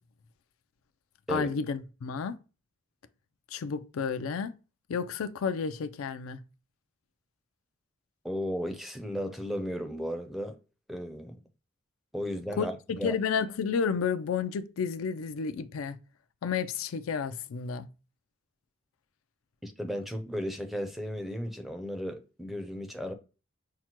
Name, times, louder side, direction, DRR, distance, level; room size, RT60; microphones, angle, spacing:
voice 1, 1.3-2.4 3.5-4.5 4.9-6.4 12.6-16.0 16.4-17.9, left 6 dB, 85° left, 0.4 m, -31 dB
voice 2, 8.2-10.5 10.9-11.4 12.1-13.1 19.6-23.1, equal, ahead, 0.5 m, -35 dB
5.8 x 2.1 x 2.9 m
head